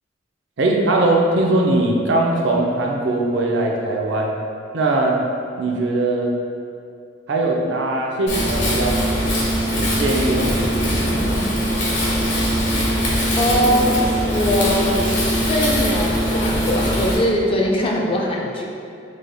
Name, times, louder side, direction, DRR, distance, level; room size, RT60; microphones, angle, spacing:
voice 1, 0.6-4.4 4.7-5.2 5.6-6.4 7.3-9.0 9.7-11.2, right 2 dB, 80° right, -1 dB, 0.5 m, -20 dB
Wind, 8.3-17.1, equal, 80° left, 1.2 m, -21 dB
voice 2, 13.4-14.0 14.3-15.1 15.4-18.6, left 1 dB, 30° left, -1 dB, 0.5 m, -21 dB
5.1 x 3.3 x 2.2 m, 2.6 s
head